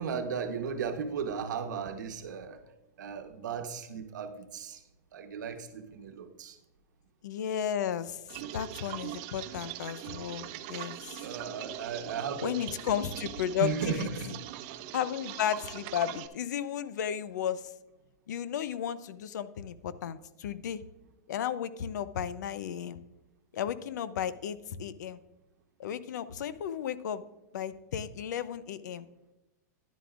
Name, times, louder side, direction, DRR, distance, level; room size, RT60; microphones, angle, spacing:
voice 1, 0.0-2.6 3.0-4.8 5.1-6.6 10.5-10.6 11.2-12.6 13.6-14.3, right 6 dB, 85° right, 7 dB, 1.1 m, -35 dB
voice 2, 7.2-8.2 8.5-11.2 12.4-14.3 14.9-17.7 18.3-20.8 21.3-23.0 23.5-25.2 25.8-27.2 27.5-29.1, left 9 dB, 75° left, 15 dB, 0.5 m, -34 dB
sound 1, 8.3-16.3, right 13 dB, 30° right, 0.4 m, -42 dB
10.5 x 10.5 x 2.4 m, 0.97 s
supercardioid pair, 165°, 10 cm